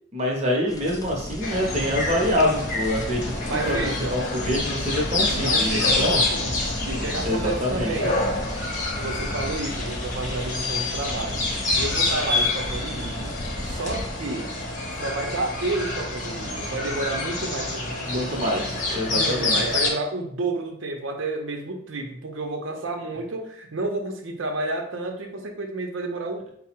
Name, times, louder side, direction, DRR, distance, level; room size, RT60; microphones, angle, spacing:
voice 1, 0.1-3.3 3.7-3.8 4.1-6.2 7.2-7.9 18.1-18.6 18.9-19.6, left 1 dB, 35° right, -1 dB, 0.8 m, -25 dB
sound 1, 0.7-14.1, left 1 dB, 20° left, 0.3 m, -34 dB
sound 2, 1.4-19.9, left 2 dB, 40° left, 0.8 m, -27 dB
voice 2, 3.5-4.2 5.3-8.2 9.0-11.4 11.8-13.3 13.6-14.5 15.0-26.5, right 2 dB, 70° right, 4 dB, 0.7 m, -31 dB
4.6 x 2.0 x 4.4 m, 0.69 s
head